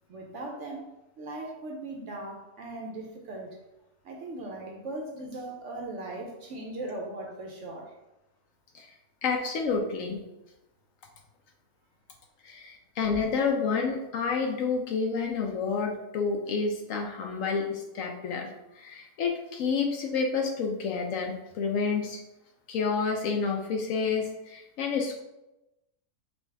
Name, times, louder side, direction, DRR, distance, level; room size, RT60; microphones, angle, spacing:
voice 1, 0.1-0.9 1.2-3.6 4.0-8.0, right 2 dB, 65° right, 0 dB, 0.8 m, -38 dB
voice 2, 9.2-10.2 12.4-22.2 22.7-25.2, left 5 dB, 70° left, 2 dB, 0.8 m, -29 dB
5.2 x 2.3 x 3.3 m, 0.96 s
omnidirectional pair, 1.6 m